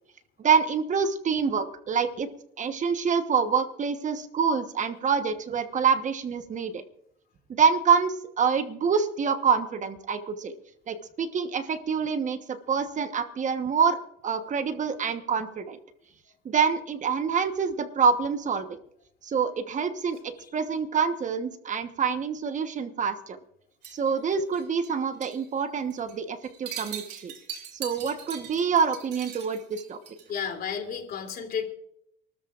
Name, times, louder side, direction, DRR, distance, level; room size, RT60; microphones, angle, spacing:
voice 1, 0.4-2.3 2.6-6.8 7.6-10.5 10.9-14.0 14.2-15.8 16.4-18.8 19.2-23.4 23.9-27.3 27.7-30.0, right 6 dB, 40° right, 8 dB, 1.2 m, -26 dB
sound 1, 23.8-24.9 25.2-25.4 25.8-26.1 26.4-30.3, right 8 dB, 60° right, 3.1 m, -41 dB
voice 2, 30.3-31.6, left 7 dB, 50° left, 4 dB, 3.1 m, -32 dB
28.5 x 13.5 x 2.5 m, 0.72 s
cardioid pair, 110°, 20 cm